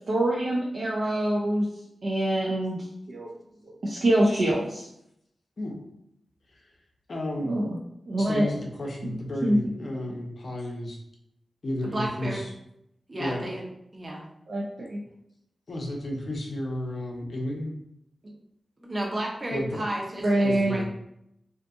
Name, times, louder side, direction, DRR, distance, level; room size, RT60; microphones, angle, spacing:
voice 1, 0.1-1.6 2.0-2.8 3.1-3.3 3.8-4.9 7.5-7.7 8.1-8.5 9.0-9.1 9.4-9.6 14.5-15.0 20.2-20.9, right 1 dB, 70° right, -4 dB, 0.5 m, -25 dB
voice 2, 7.1-7.6 8.2-11.0 11.6-12.5 13.2-13.5 15.7-17.7 19.5-19.8 20.4-20.9, left 1 dB, 60° left, 0 dB, 0.6 m, -32 dB
voice 3, 11.8-12.4 13.1-13.7 13.9-14.2 18.8-20.9, right 1 dB, 40° right, -2 dB, 0.8 m, -32 dB
2.5 x 2.5 x 2.4 m, 0.78 s
cardioid pair, 45°, 0 cm